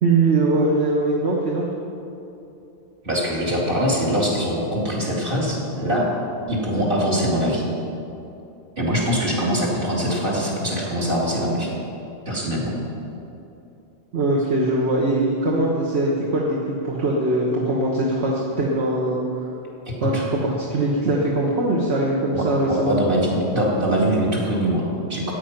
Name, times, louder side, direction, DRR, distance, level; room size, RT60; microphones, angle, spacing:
voice 1, 0.0-1.7 14.1-19.5 20.0-23.0, right 2 dB, 70° right, -3 dB, 1.6 m, -21 dB
voice 2, 3.0-6.1 6.5-7.6 8.8-11.7 12.3-12.8 19.9-20.2 22.3-25.3, equal, 50° right, -5 dB, 3.1 m, -23 dB
14.0 x 9.2 x 5.9 m, 2.8 s
omnidirectional pair, 1.2 m